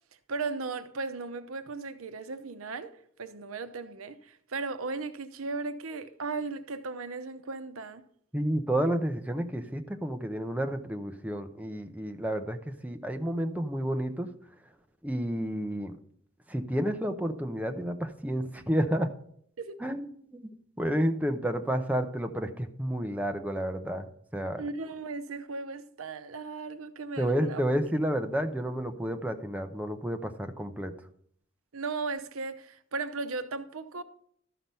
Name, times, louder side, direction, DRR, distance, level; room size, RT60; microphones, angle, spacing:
voice 1, 0.3-2.9 3.2-8.0 19.6-19.8 24.6-27.6 31.7-34.0, right 3 dB, 85° right, 0.8 m, -36 dB
voice 2, 8.3-12.6 12.8-14.3 15.0-16.0 16.5-19.1 19.8-20.1 20.3-20.4 20.8-24.1 24.3-24.6 27.2-30.9, equal, 5° right, 0.7 m, -30 dB
13.0 x 5.9 x 5.4 m
head